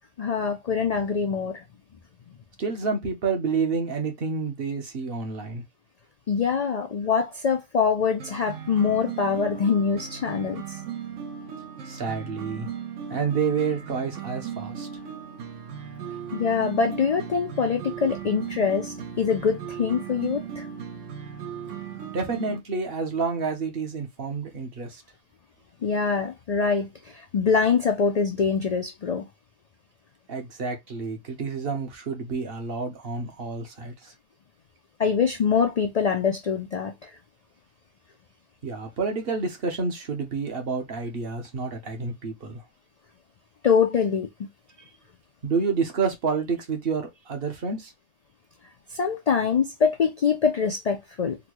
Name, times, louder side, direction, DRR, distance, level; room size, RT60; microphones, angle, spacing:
voice 1, 0.2-1.6 6.3-10.8 16.3-20.7 25.8-29.2 35.0-37.1 43.6-44.5 48.9-51.4, left 6 dB, 80° left, 0.3 m, -24 dB
voice 2, 2.6-5.6 11.9-12.7 13.1-14.9 22.1-25.0 30.3-34.1 38.6-42.6 45.4-47.9, right 5 dB, 55° right, 1.0 m, -29 dB
sound 1, 8.2-22.6, right 8 dB, 80° right, 1.2 m, -37 dB
3.9 x 2.2 x 2.9 m
omnidirectional pair, 1.3 m